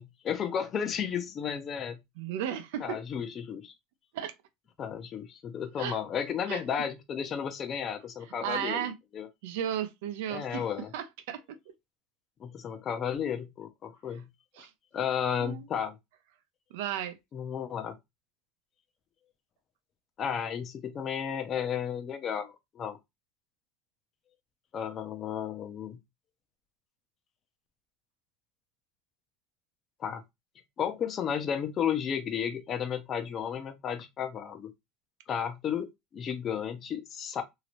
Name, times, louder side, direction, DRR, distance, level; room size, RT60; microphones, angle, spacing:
voice 1, 0.0-2.0 2.8-3.7 4.8-9.3 10.3-10.9 12.4-14.2 14.9-15.9 17.3-17.9 20.2-23.0 24.7-26.0 30.0-30.2 30.8-34.7 35.3-37.4, left 8 dB, 30° left, 0.6 m, -33 dB
voice 2, 2.2-3.0 4.1-4.3 5.8-6.0 6.5-6.6 8.4-8.9 9.4-10.7 10.9-11.4 14.6-14.7 15.4-15.7 16.7-17.2, right 10 dB, 75° right, 0.6 m, -34 dB
3.0 x 2.8 x 3.0 m
supercardioid pair, 155°, 0 cm